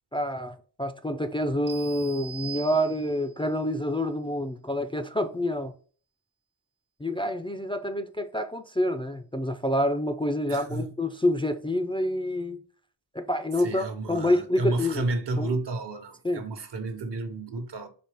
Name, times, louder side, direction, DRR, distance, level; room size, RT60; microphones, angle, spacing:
voice 1, 0.1-5.7 7.0-12.6 13.1-15.0 15.4-15.5 16.2-16.4, left 1 dB, 10° left, 0.4 m, -27 dB
sound 1, 1.7-3.4, right 7 dB, 85° right, 0.7 m, -42 dB
voice 2, 10.5-10.9 13.6-17.9, right 2 dB, 65° right, 1.0 m, -31 dB
4.2 x 3.3 x 3.5 m
cardioid pair, 75°, 44 cm